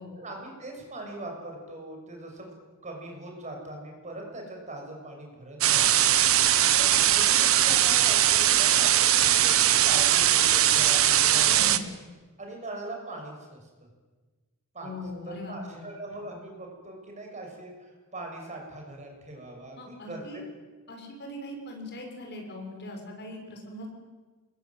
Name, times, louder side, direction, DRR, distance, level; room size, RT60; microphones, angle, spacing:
voice 1, 0.2-2.5 2.8-6.2 6.8-11.8 12.4-13.6 14.7-15.0 15.3-20.4, right 1 dB, 35° right, 2 dB, 7.4 m, -41 dB
sound 1, 5.6-11.8, right 11 dB, 65° right, 1.4 m, -21 dB
voice 2, 11.5-11.9 14.8-15.8 19.8-20.4 20.9-23.9, left 1 dB, 50° left, 2 dB, 6.9 m, -40 dB
28.5 x 21.5 x 9.3 m, 1.3 s
head